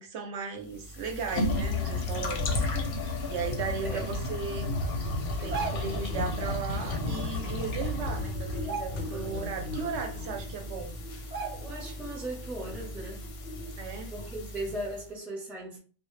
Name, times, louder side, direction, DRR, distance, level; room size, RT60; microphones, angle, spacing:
voice 1, 0.0-2.9 3.3-4.7 5.4-10.9 13.8-14.1, right 5 dB, 70° right, 0.8 m, -36 dB
sound 1, 0.7-15.0, left 2 dB, 60° left, 0.7 m, -33 dB
sound 2, 5.3-6.1 7.5-7.6 7.9-8.2 8.5-9.4 9.8-9.9 10.6-10.7 11.3-11.9 12.3-12.5, right 5 dB, 35° right, 0.8 m, -37 dB
voice 2, 9.1-9.6 11.6-13.3 14.1-15.8, right 1 dB, ahead, 0.5 m, -38 dB
2.0 x 2.0 x 3.0 m
omnidirectional pair, 1.2 m